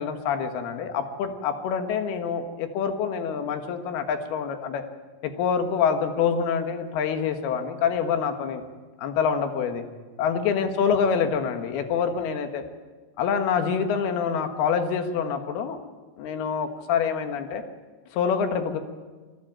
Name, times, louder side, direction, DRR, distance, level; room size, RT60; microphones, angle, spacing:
voice 1, 0.0-4.8 5.2-8.6 9.0-9.8 10.2-12.6 13.2-15.8 16.2-17.6 18.1-18.8, left 6 dB, 65° left, 6 dB, 3.2 m, -26 dB
23.0 x 14.5 x 8.9 m, 1.3 s
omnidirectional pair, 5.4 m